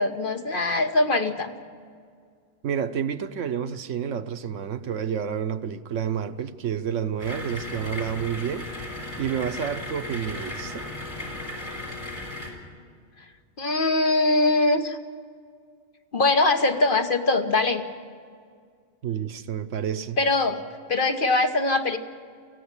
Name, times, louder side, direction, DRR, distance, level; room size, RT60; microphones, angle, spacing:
voice 1, 0.0-1.5 13.6-15.0 16.1-17.9 20.2-20.6 20.9-22.0, left 2 dB, 45° left, 6 dB, 1.3 m, -22 dB
voice 2, 2.6-8.7 9.2-10.8 19.0-20.2, right 8 dB, 80° right, 10 dB, 1.2 m, -29 dB
sound 1, 7.2-12.5, left 2 dB, 15° left, 3.9 m, -36 dB
19.0 x 15.0 x 9.7 m, 2.1 s
omnidirectional pair, 1.3 m